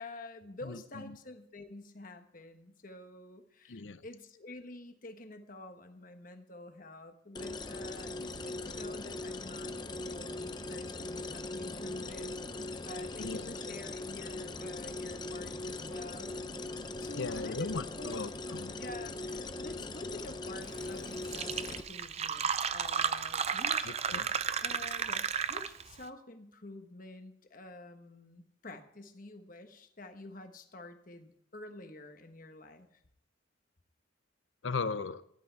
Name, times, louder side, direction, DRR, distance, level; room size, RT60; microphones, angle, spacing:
voice 1, 0.0-16.3 17.0-18.1 18.7-23.9 24.3-33.0, left 2 dB, 45° left, 7 dB, 1.2 m, -48 dB
voice 2, 3.7-4.0 13.2-13.5 17.1-18.7 23.8-24.3 34.6-35.2, left 4 dB, 70° left, 14 dB, 0.7 m, -37 dB
sound 1, 7.3-21.8, left 2 dB, 20° left, 0.6 m, -40 dB
Fill (with liquid), 20.9-21.0 21.2-25.9, right 7 dB, 35° right, 0.5 m, -33 dB
14.0 x 10.5 x 4.6 m, 0.73 s
head